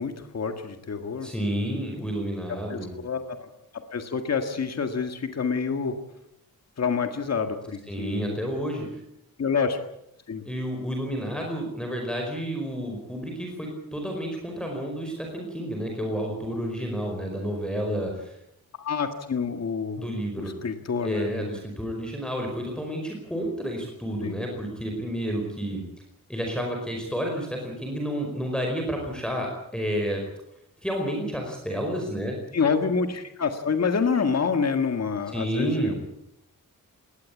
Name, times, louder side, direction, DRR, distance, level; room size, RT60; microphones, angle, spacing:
voice 1, 0.0-1.3 2.5-3.5 3.7-6.0 6.8-8.4 9.4-9.8 10.3-10.4 18.8-20.1 20.4-21.5 24.2-24.4 32.5-36.0, left 5 dB, 45° left, 7 dB, 1.9 m, -27 dB
voice 2, 1.2-2.9 7.9-8.8 10.4-18.3 20.0-20.5 21.0-25.8 26.3-30.2 30.8-32.4 35.3-36.0, equal, ahead, 1 dB, 5.0 m, -30 dB
21.0 x 19.5 x 8.5 m, 0.79 s
wide cardioid pair, 155°, 35 cm